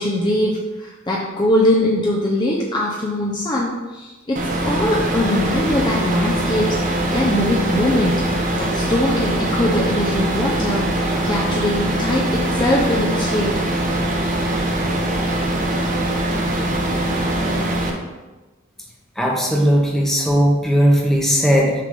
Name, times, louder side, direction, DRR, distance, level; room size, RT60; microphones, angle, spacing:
voice 1, 0.0-8.2 8.5-13.6, left 1 dB, 20° left, -3 dB, 0.7 m, -21 dB
sound 1, 4.4-17.9, right 1 dB, 40° right, 0.9 m, -22 dB
voice 2, 19.2-21.7, equal, ahead, -2 dB, 1.0 m, -17 dB
6.6 x 3.5 x 5.3 m, 1.2 s
head